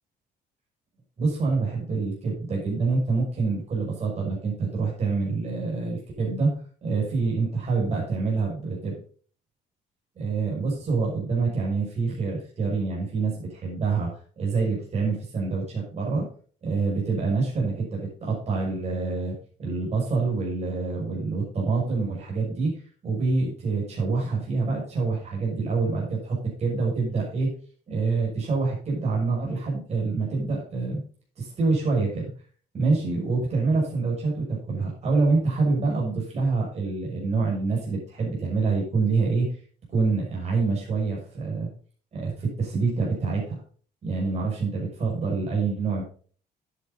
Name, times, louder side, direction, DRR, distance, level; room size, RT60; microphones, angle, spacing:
voice 1, 1.2-6.5 6.8-8.9 10.2-14.1 14.4-16.3 16.6-27.5 27.9-31.0 31.4-32.3 32.7-39.5 39.9-41.7 42.1-43.6 44.0-46.0, right 4 dB, 40° right, -2 dB, 6.3 m, -26 dB
9.7 x 9.6 x 4.0 m, 0.42 s
cardioid pair, 110°, 17 cm